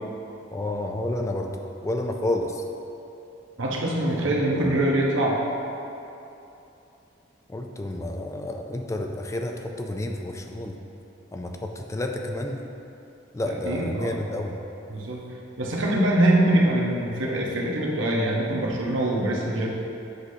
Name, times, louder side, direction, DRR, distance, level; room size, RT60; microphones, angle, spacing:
voice 1, 0.5-2.6 4.3-4.7 7.5-10.8 11.3-12.6 13.3-14.6, left 1 dB, 15° left, 3 dB, 0.3 m, -30 dB
voice 2, 3.6-5.4 13.5-14.2 14.9-15.2 15.6-19.7, right 1 dB, 90° right, -3 dB, 1.1 m, -23 dB
8.2 x 6.4 x 2.8 m, 2.9 s
head